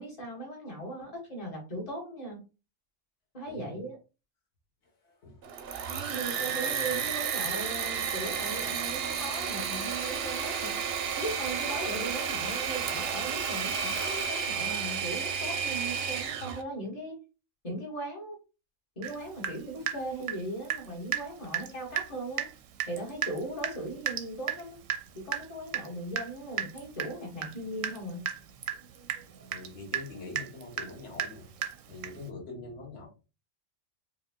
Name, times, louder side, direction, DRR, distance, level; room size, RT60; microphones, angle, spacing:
voice 1, 0.0-2.4 3.3-4.0 5.9-10.7 11.2-17.2 17.6-18.4 19.0-22.5 22.9-24.8 25.1-28.3, right 1 dB, 30° left, -2 dB, 1.4 m, -38 dB
voice 2, 3.5-3.8 4.8-6.2 6.6-7.2 10.2-10.3 29.5-31.5 31.8-33.1, left 3 dB, 65° left, -1 dB, 1.6 m, -45 dB
Engine / Mechanisms, 5.4-16.6, right 7 dB, 60° right, 0.7 m, -32 dB
Water tap faucet / Drip, 19.0-19.2 19.4-20.9 21.1-21.3 21.5-21.7 22.0-22.1 22.4-22.5 22.8-32.3, right 10 dB, 90° right, 1.0 m, -34 dB
4.7 x 2.3 x 2.2 m, 0.31 s
omnidirectional pair, 1.3 m